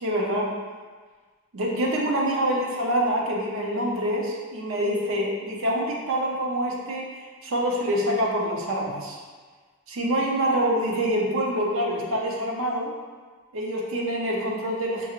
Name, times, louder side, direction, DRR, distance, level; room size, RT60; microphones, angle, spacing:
voice 1, 0.0-0.5 1.5-9.2 9.9-12.9 13.5-15.1, equal, 65° right, -2 dB, 0.7 m, -26 dB
5.9 x 2.4 x 3.0 m, 1.4 s
head